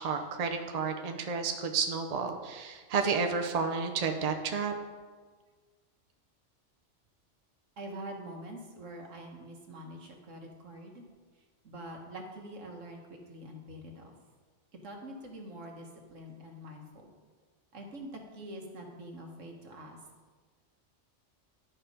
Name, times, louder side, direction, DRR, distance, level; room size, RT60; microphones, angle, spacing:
voice 1, 0.0-4.7, right 5 dB, 40° right, 5 dB, 0.6 m, -31 dB
voice 2, 7.8-11.1 11.6-14.1 14.8-17.1 17.7-20.0, right 1 dB, 90° right, 2 dB, 1.6 m, -45 dB
11.0 x 4.4 x 5.2 m, 1.5 s
omnidirectional pair, 1.3 m